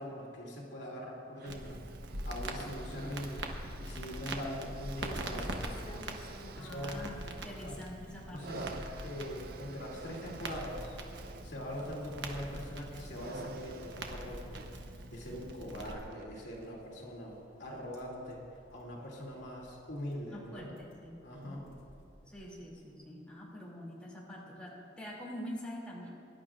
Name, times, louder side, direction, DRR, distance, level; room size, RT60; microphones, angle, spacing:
voice 1, 0.0-1.8 2.2-3.4 3.8-5.7 6.6-7.0 7.6-7.8 8.3-11.0 11.4-14.6 15.1-18.4 18.7-20.7 21.2-21.6, equal, 70° left, -4 dB, 2.6 m, -42 dB
sound 1, 1.3-16.8 17.6-17.7, right 4 dB, 55° right, 0.5 m, -52 dB
Crackle, 1.5-15.9, right 1 dB, 75° right, 1.1 m, -43 dB
sound 2, 3.6-22.7, equal, 35° left, 2.8 m, -58 dB
voice 2, 6.5-8.6 20.3-21.6 22.3-26.1, equal, 5° left, -6 dB, 2.7 m, -45 dB
23.0 x 11.5 x 2.5 m, 2.5 s
head